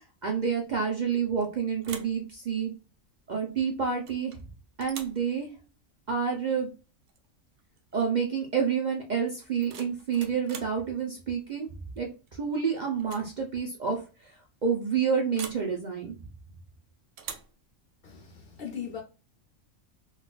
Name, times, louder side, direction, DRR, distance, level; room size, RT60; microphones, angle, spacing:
voice 1, 0.0-2.7 3.3-4.3 4.8-5.5 6.1-6.7 7.9-11.7 12.0-14.3 14.6-16.2, right 6 dB, 50° right, 0.5 m, -29 dB
sound 1, 1.1-1.5 1.8-2.2 4.1-4.4 4.8-5.2 7.1-7.3 7.6-7.9 9.4-10.8 12.3-12.6 13.0-13.3 13.6-13.7 15.3-15.7 17.2-17.6, right 7 dB, 70° right, 0.9 m, -43 dB
voice 2, 18.0-19.0, left 8 dB, 60° left, 0.6 m, -39 dB
3.9 x 2.3 x 2.2 m
omnidirectional pair, 1.3 m